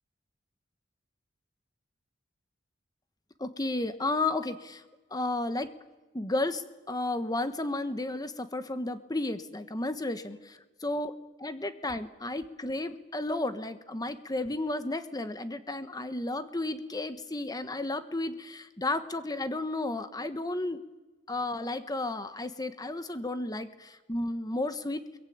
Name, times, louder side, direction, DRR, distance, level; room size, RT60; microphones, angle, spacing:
voice 1, 3.4-4.8 5.1-5.7 6.1-10.4 10.8-11.1 11.4-20.8 21.3-25.0, left 2 dB, 20° left, 10 dB, 1.3 m, -33 dB
23.0 x 22.0 x 8.8 m, 1.2 s
head